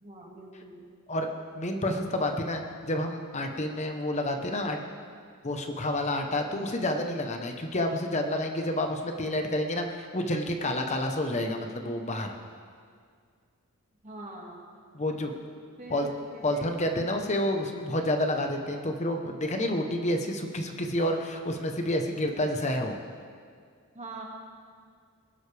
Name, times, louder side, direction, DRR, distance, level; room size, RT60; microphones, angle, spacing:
voice 1, 0.0-0.9 14.0-14.7 15.3-15.4 15.8-16.7 23.9-24.2, right 2 dB, 30° right, -2 dB, 2.1 m, -43 dB
voice 2, 1.5-4.8 5.4-12.3 14.9-15.3 15.9-16.1 16.4-23.0, left 1 dB, 30° left, 4 dB, 1.0 m, -29 dB
21.0 x 11.5 x 3.4 m, 2.1 s
head